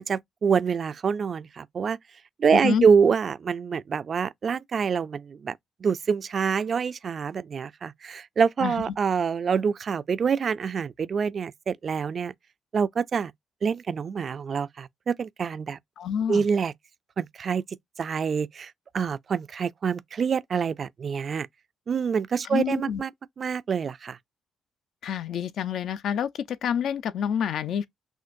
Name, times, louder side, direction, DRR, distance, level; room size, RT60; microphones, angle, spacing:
voice 1, 0.0-2.0 2.4-12.3 12.7-13.3 13.6-15.8 16.3-16.7 17.2-21.5 21.9-23.1 23.4-24.2, right 6 dB, 45° right, 0.3 m, -26 dB
voice 2, 2.5-2.9 8.6-8.7 16.0-16.5 22.5-23.0 25.0-27.9, left 8 dB, 70° left, 0.5 m, -28 dB
6.2 x 2.5 x 2.5 m
cardioid pair, 90°, 0 cm